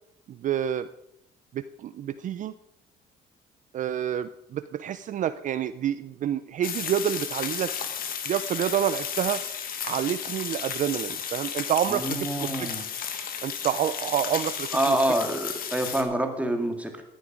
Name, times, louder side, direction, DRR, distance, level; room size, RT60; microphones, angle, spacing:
voice 1, 0.3-0.9 1.5-2.5 3.7-7.7 8.3-9.4 9.8-12.7 13.4-15.0, right 10 dB, 50° right, 13 dB, 0.5 m, -28 dB
sound 1, 6.6-16.0, left 7 dB, 60° left, 1.8 m, -33 dB
voice 2, 11.9-12.8 14.7-17.0, right 1 dB, 10° right, 5 dB, 2.0 m, -27 dB
14.0 x 10.5 x 5.1 m, 0.83 s
cardioid pair, 110°, 17 cm